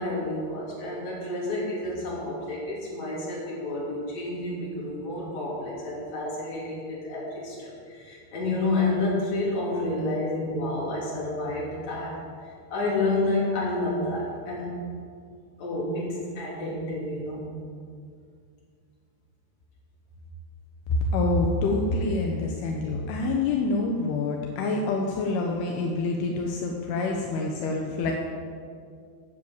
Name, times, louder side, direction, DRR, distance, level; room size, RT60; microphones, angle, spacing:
voice 1, 0.0-12.1 12.7-14.8 15.6-17.5, left 2 dB, 45° left, -6 dB, 4.2 m, -29 dB
voice 2, 20.9-28.1, left 3 dB, 80° left, 1 dB, 2.9 m, -26 dB
10.0 x 7.2 x 7.7 m, 2.2 s
omnidirectional pair, 4.6 m